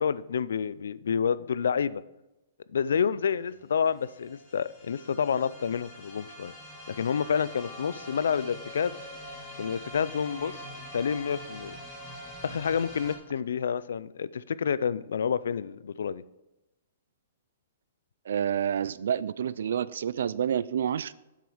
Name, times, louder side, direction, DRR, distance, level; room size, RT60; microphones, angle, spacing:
voice 1, 0.0-2.0 2.7-6.5 6.9-9.0 9.6-10.6 10.9-11.8 12.4-16.2, left 7 dB, 85° left, 18 dB, 0.4 m, -29 dB
sound 1, 3.2-13.2, equal, 10° left, 1.6 m, -44 dB
voice 2, 18.3-21.1, right 9 dB, 65° right, 18 dB, 0.3 m, -28 dB
7.5 x 7.0 x 4.9 m, 0.98 s
hypercardioid pair, 170°, 0 cm